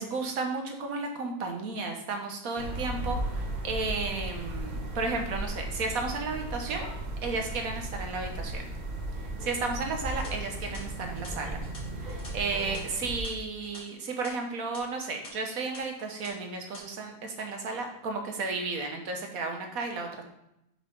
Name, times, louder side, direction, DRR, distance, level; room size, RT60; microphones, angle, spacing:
voice 1, 0.0-6.9 7.2-8.6 9.4-11.6 12.0-20.2, right 3 dB, 60° right, 3 dB, 1.5 m, -33 dB
sound 1, 2.6-13.2, right 1 dB, 35° right, 0.8 m, -36 dB
sound 2, 10.1-14.3 14.6-14.8 15.2-15.3 15.7-16.3 16.6-16.8, left 2 dB, 50° left, 2.3 m, -49 dB
5.6 x 5.0 x 5.2 m, 0.83 s
omnidirectional pair, 1.8 m